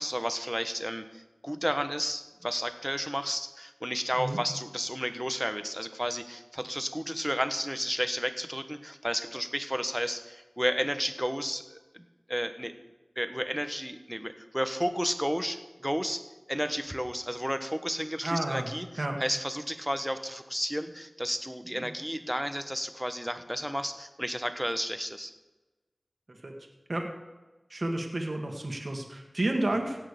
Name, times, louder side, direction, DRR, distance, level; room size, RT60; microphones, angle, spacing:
voice 1, 0.0-12.7 13.2-16.2 16.5-25.3, equal, 5° right, 9 dB, 1.2 m, -32 dB
voice 2, 18.2-18.7 19.0-19.2 21.7-21.9 26.3-26.5 26.9-27.1 27.7-30.0, right 1 dB, 55° right, 2 dB, 1.8 m, -31 dB
17.0 x 6.6 x 6.8 m, 1.2 s
wide cardioid pair, 40°, 0 cm